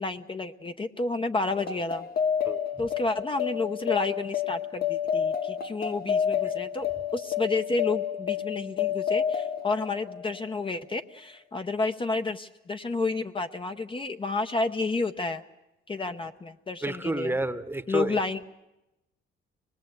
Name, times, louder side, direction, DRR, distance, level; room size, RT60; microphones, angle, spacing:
voice 1, 0.0-2.1 2.8-15.4 15.9-17.3 17.9-18.4, left 3 dB, 25° left, 7 dB, 0.8 m, -30 dB
sound 1, 1.5-10.5, left 8 dB, 50° left, 1.0 m, -30 dB
voice 2, 16.8-18.2, right 2 dB, 10° right, 11 dB, 1.0 m, -30 dB
24.5 x 20.0 x 8.1 m, 0.93 s
cardioid pair, 90°, 20 cm